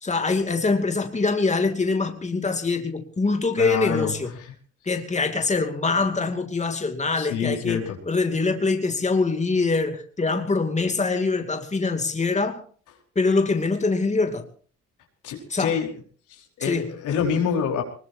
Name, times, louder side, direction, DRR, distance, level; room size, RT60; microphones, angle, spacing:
voice 1, 0.0-4.3 4.8-12.6 13.2-14.4 15.5-15.8 16.6-16.9, left 3 dB, 25° left, 2.6 m, -24 dB
voice 2, 3.6-4.1 7.2-8.0 15.2-15.9 16.4-17.8, left 7 dB, 85° left, 4.8 m, -26 dB
23.0 x 21.0 x 2.8 m
cardioid pair, 90°, 30 cm